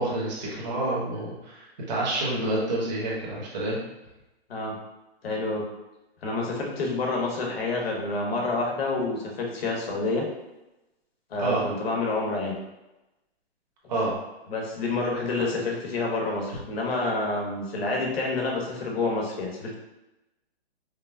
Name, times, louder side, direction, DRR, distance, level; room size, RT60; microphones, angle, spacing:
voice 1, 0.0-3.8 11.4-11.6 13.9-14.1, right 2 dB, 40° right, -5 dB, 1.1 m, -28 dB
voice 2, 5.2-5.6 6.2-10.3 11.3-12.6 14.5-19.7, left 3 dB, 65° left, -1 dB, 1.2 m, -28 dB
5.1 x 2.0 x 2.3 m, 0.98 s
hypercardioid pair, 175°, 33 cm